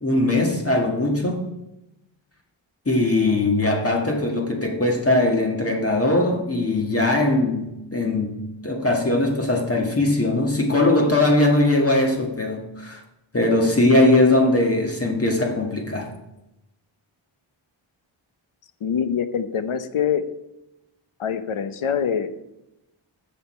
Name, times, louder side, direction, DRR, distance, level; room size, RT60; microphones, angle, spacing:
voice 1, 0.0-1.4 2.9-8.3 8.6-13.0 13.3-16.1, left 2 dB, 30° left, 1 dB, 1.6 m, -20 dB
voice 2, 18.8-20.2 21.2-22.3, left 7 dB, 80° left, 11 dB, 0.9 m, -24 dB
13.5 x 6.7 x 4.3 m, 0.92 s
wide cardioid pair, 130°, 49 cm